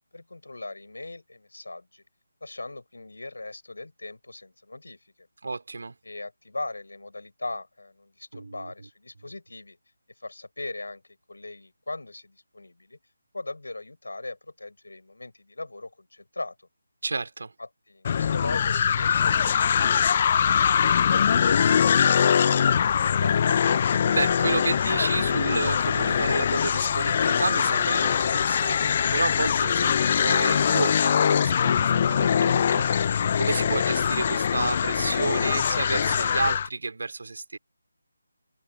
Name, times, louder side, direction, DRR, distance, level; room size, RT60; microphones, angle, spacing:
voice 1, 0.1-2.0 2.4-5.3 6.0-9.8 10.2-11.0 11.3-13.0 13.3-16.5 17.6-22.4 23.0-23.5, left 2 dB, 80° left, 6.3 m, -39 dB
voice 2, 5.4-5.9 8.3-8.7 17.0-17.5 23.8-37.6, right 3 dB, 65° right, 2.9 m, -31 dB
sound 1, 18.0-36.7, left 7 dB, 35° left, 0.6 m, -22 dB
open air
figure-of-eight pair, 160°, 0 cm